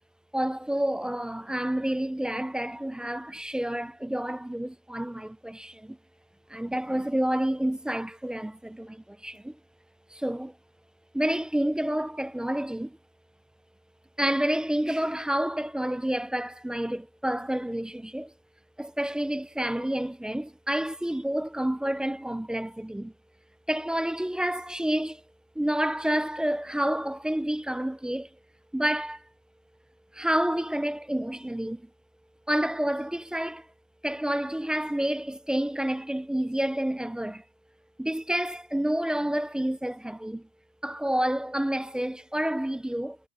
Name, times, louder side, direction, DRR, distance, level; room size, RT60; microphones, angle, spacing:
voice 1, 0.3-6.0 6.5-9.6 10.1-10.5 11.1-13.0 14.2-18.3 18.8-23.1 23.7-25.2 25.6-28.3 28.7-29.2 30.1-31.9 32.5-33.7 34.0-37.4 38.0-40.5 40.8-43.2, right 1 dB, ahead, 0.5 m, -29 dB
supercardioid pair, 135°, 46 cm